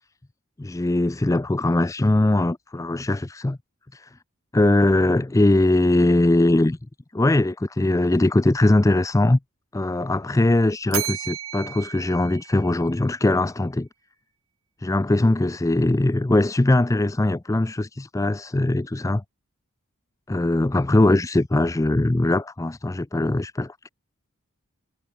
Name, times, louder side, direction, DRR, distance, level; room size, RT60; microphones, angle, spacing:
voice 1, 0.6-3.6 3.9-4.1 4.5-6.8 7.1-9.4 9.7-13.9 14.8-19.2 20.3-23.9, left 2 dB, 15° left, 0.4 m, -21 dB
Bell, 10.9-13.2, right 12 dB, 65° right, 1.3 m, -33 dB
head